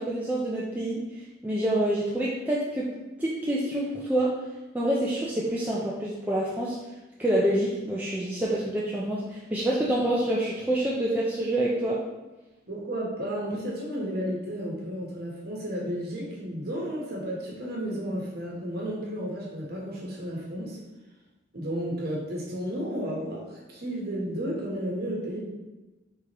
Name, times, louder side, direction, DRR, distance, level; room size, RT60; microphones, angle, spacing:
voice 1, 0.0-2.9 3.2-4.4 4.7-6.8 7.2-12.0, right 1 dB, 10° right, -5 dB, 0.4 m, -27 dB
voice 2, 12.7-20.8 21.5-25.4, equal, 50° right, -2 dB, 1.1 m, -32 dB
4.4 x 3.6 x 2.9 m, 1.1 s
head